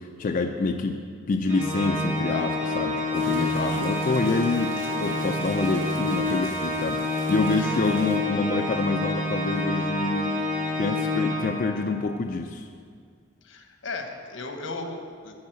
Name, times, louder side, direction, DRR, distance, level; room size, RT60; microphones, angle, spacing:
voice 1, 0.0-10.4 10.8-12.7, left 3 dB, 45° left, 4 dB, 0.4 m, -27 dB
Organ, 1.5-12.1, left 1 dB, 40° right, 1.8 m, -28 dB
sound 1, 3.1-8.2, right 1 dB, 75° right, 2.7 m, -44 dB
voice 2, 3.4-3.8 7.6-8.0 13.4-15.3, left 3 dB, 85° left, 4 dB, 1.1 m, -37 dB
10.5 x 4.6 x 7.7 m, 2.1 s
head